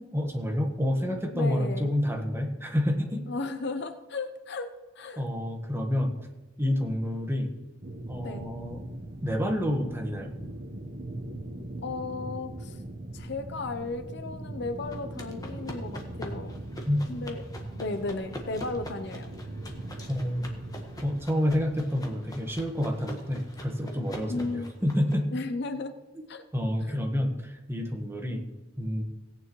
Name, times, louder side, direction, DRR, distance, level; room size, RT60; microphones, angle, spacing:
voice 1, 0.1-3.3 5.2-6.1 6.6-7.5 8.1-8.8 9.2-10.3 16.9-17.0 20.1-20.6 21.0-24.5 24.8-25.3 26.5-28.4 28.8-29.0, left 1 dB, 10° right, 2 dB, 1.3 m, -28 dB
voice 2, 1.3-1.9 3.3-5.2 8.2-8.5 11.8-12.8 13.1-16.6 17.1-17.4 17.8-19.3 24.3-24.7 25.3-26.0 26.3-26.4 26.9-27.0, left 3 dB, 60° left, 9 dB, 0.7 m, -35 dB
sound 1, 7.8-21.2, right 1 dB, 50° right, 1.1 m, -40 dB
sound 2, 14.9-25.4, left 1 dB, 20° left, 1.4 m, -44 dB
17.5 x 9.4 x 3.1 m, 1.1 s
head